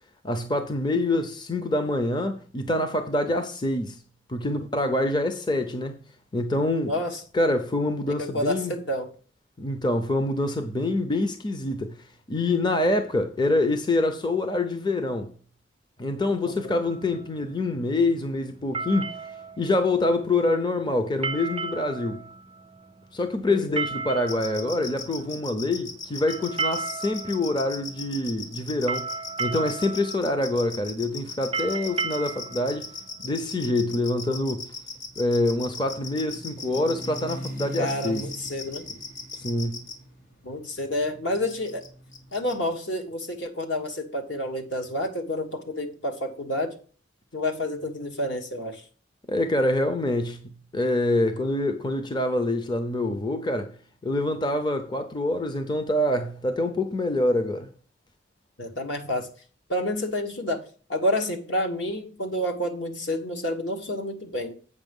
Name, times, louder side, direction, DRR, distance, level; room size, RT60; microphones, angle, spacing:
voice 1, 0.2-4.0 4.3-6.0 6.3-6.9 7.3-8.7 9.6-11.9 12.3-15.3 16.0-19.1 19.6-22.2 23.1-29.1 29.4-32.9 33.2-34.7 35.2-38.3 39.3-39.8 49.3-50.4 50.7-53.7 54.0-57.7, left 2 dB, 25° left, 0.6 m, -26 dB
voice 2, 6.9-7.2 8.1-9.1 16.4-16.8 23.4-23.8 37.8-38.9 40.4-41.8 42.3-46.7 47.3-48.8 58.6-59.3 59.7-60.6 60.9-64.6, left 1 dB, 65° left, 1.5 m, -29 dB
sound 1, 16.8-34.0, right 4 dB, 25° right, 0.4 m, -35 dB
sound 2, 24.3-39.9 41.3-41.9 42.1-42.5, left 5 dB, 85° left, 1.9 m, -37 dB
sound 3, 34.6-42.4, right 1 dB, 50° left, 3.6 m, -42 dB
8.1 x 5.8 x 5.3 m
head